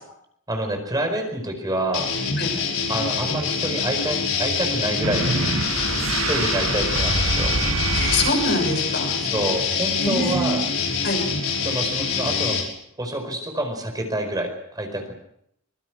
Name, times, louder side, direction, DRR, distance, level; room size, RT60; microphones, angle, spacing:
voice 1, 0.5-2.1 2.9-5.5 6.2-7.6 9.2-10.6 11.6-12.6 13.0-15.1, right 1 dB, 20° right, 4 dB, 4.8 m, -27 dB
sound 1, 1.9-12.6, left 5 dB, 85° left, 5.7 m, -25 dB
sound 2, 5.0-8.9, right 3 dB, 80° right, 1.6 m, -25 dB
voice 2, 7.9-9.1 10.0-10.6 11.0-11.2, left 1 dB, 55° left, 3 dB, 6.7 m, -24 dB
25.5 x 23.0 x 6.3 m, 0.72 s
head